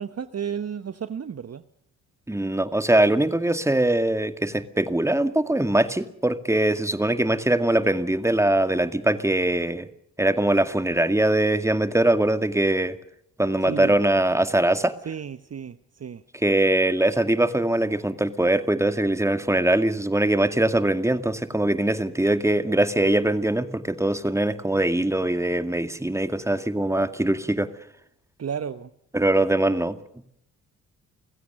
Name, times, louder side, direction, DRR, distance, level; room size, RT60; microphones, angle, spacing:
voice 1, 0.0-1.6 13.6-14.0 15.0-16.2 28.4-28.9, right 7 dB, 35° right, 12 dB, 1.2 m, -33 dB
voice 2, 2.3-9.9 10.2-13.0 13.4-14.9 16.3-27.7 29.1-30.0, right 1 dB, 5° right, 10 dB, 2.1 m, -22 dB
30.0 x 16.0 x 6.9 m, 0.74 s
figure-of-eight pair, 40°, 45 cm